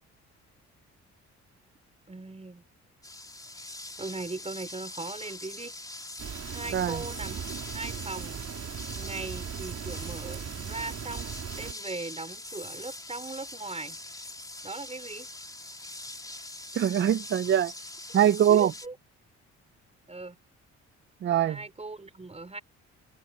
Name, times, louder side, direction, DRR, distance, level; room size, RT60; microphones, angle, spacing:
voice 1, 2.1-2.6 4.0-5.7 6.5-7.4 7.7-8.4 9.0-14.0 14.6-15.3 18.5-19.0 20.1-20.4 21.4-22.6, right 3 dB, 20° right, 5.3 m, -39 dB
sound 1, 3.0-18.9, left 2 dB, 10° left, 3.3 m, -43 dB
sound 2, 6.2-11.7, right 8 dB, 60° right, 3.9 m, -38 dB
voice 2, 16.8-17.7 18.1-18.7 21.2-21.6, right 10 dB, 40° right, 0.5 m, -23 dB
cardioid pair, 90°, 30 cm